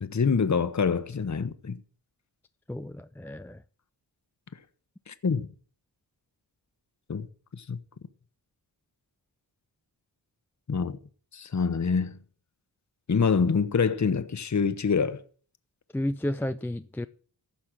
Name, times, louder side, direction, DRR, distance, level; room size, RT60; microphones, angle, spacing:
voice 1, 0.0-1.8 5.1-5.5 7.1-7.3 7.5-7.8 10.7-11.0 11.3-12.2 13.1-15.2, left 5 dB, 40° left, 1.0 m, -26 dB
voice 2, 2.7-3.6 15.9-17.1, left 1 dB, 5° left, 0.4 m, -32 dB
15.0 x 5.5 x 6.3 m
cardioid pair, 55°, 46 cm